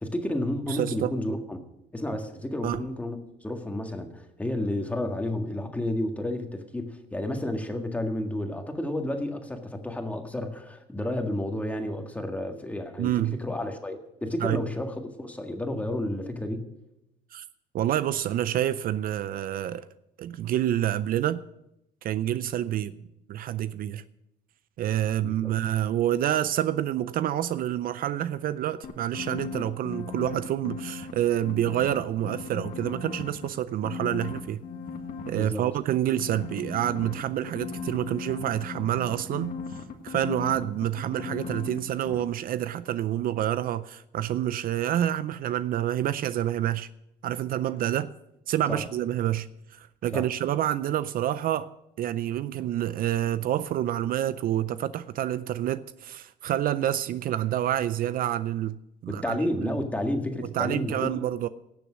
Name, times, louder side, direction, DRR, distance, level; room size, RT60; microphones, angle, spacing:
voice 1, 0.0-1.6 1.9-16.7 25.2-25.5 35.3-35.6 48.7-48.8 50.1-50.3 59.1-61.2, left 1 dB, 10° left, 1.7 m, -31 dB
voice 2, 0.7-1.1 2.6-2.8 13.0-13.4 14.4-14.6 17.3-17.4 17.7-19.9 20.2-21.4 22.0-22.9 23.3-24.0 24.8-34.6 35.3-39.5 40.0-46.9 47.2-48.1 48.5-51.7 52.0-58.8 59.0-59.8 60.4-61.5, right 12 dB, 60° right, 0.5 m, -28 dB
sound 1, 28.8-31.1 31.4-33.5 33.8-35.3 36.1-41.8 42.0-42.2, left 5 dB, 55° left, 1.7 m, -37 dB
17.5 x 6.9 x 6.3 m
cardioid pair, 110°, 17 cm